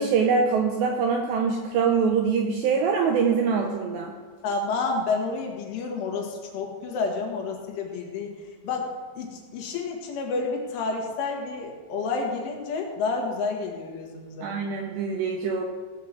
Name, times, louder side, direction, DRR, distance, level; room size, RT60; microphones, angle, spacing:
voice 1, 0.0-4.1 14.4-15.6, right 5 dB, 80° right, 2 dB, 2.5 m, -24 dB
voice 2, 4.4-14.5, left 4 dB, 70° left, 1 dB, 4.1 m, -30 dB
17.5 x 5.9 x 7.5 m, 1.4 s
omnidirectional pair, 5.9 m